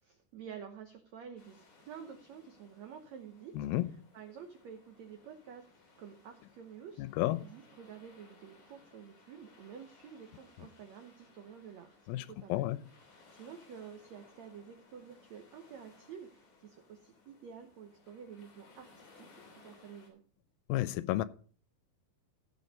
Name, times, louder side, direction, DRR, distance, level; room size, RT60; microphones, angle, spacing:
voice 1, 0.0-3.6 3.8-5.6 6.0-12.7 13.1-20.2, right 7 dB, 80° right, 1.5 m, -50 dB
sound 1, 1.4-20.1, left 3 dB, 50° left, 4.2 m, -62 dB
voice 2, 3.6-3.9 7.0-7.4 12.1-12.8 20.7-21.2, left 16 dB, 80° left, 2.3 m, -32 dB
16.0 x 5.4 x 5.1 m
omnidirectional pair, 4.4 m